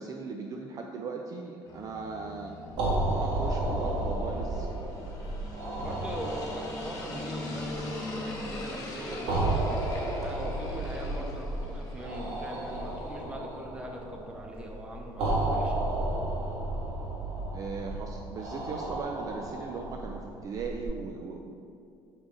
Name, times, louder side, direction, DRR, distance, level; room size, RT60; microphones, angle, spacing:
voice 1, 0.0-2.5 3.1-4.7 17.5-21.5, right 4 dB, 40° right, 2 dB, 0.4 m, -38 dB
sound 1, 1.7-13.2, left 2 dB, 35° left, 1.4 m, -42 dB
sound 2, 2.7-20.9, right 2 dB, 75° right, 1.6 m, -33 dB
voice 2, 5.8-9.7 10.2-15.8, right 1 dB, 10° right, 0 dB, 0.8 m, -41 dB
6.3 x 6.3 x 3.8 m, 2.5 s
cardioid pair, 155°, 9 cm